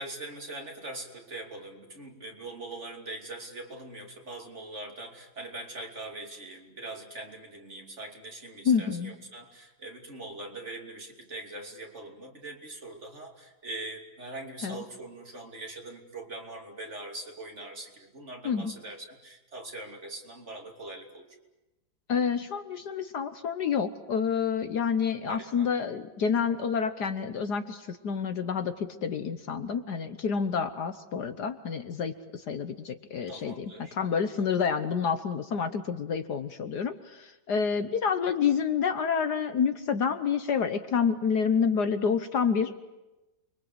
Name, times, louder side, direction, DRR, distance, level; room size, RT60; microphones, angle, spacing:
voice 1, 0.0-21.4 25.2-25.7 33.3-33.9, right 2 dB, 35° right, 2 dB, 3.2 m, -42 dB
voice 2, 8.6-9.1 14.6-14.8 18.4-18.7 22.1-33.6 33.9-42.8, left 6 dB, 60° left, 9 dB, 1.5 m, -28 dB
29.5 x 23.0 x 8.0 m, 1.0 s
omnidirectional pair, 2.1 m